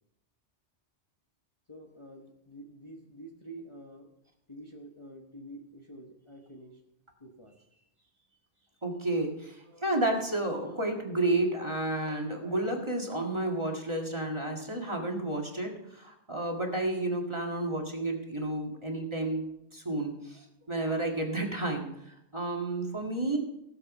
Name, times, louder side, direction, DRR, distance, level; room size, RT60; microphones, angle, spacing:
voice 1, 1.7-4.1 4.5-6.8 7.2-8.1 8.6-8.7, right 1 dB, 25° left, 0 dB, 1.1 m, -48 dB
voice 2, 8.8-23.4, right 2 dB, 25° right, 1 dB, 1.9 m, -31 dB
16.5 x 7.3 x 5.4 m, 0.81 s
omnidirectional pair, 1.2 m